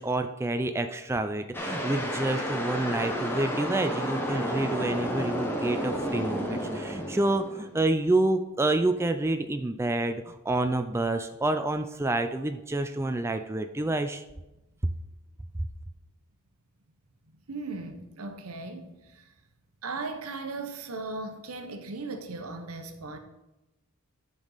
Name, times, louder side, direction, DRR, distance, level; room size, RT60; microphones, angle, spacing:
voice 1, 0.0-14.2, right 2 dB, 10° right, 0.3 m, -28 dB
sound 1, 1.5-7.8, equal, 10° left, 1.0 m, -31 dB
voice 2, 17.5-19.2 19.8-23.2, right 3 dB, 85° right, 1.0 m, -37 dB
10.5 x 5.3 x 4.0 m
head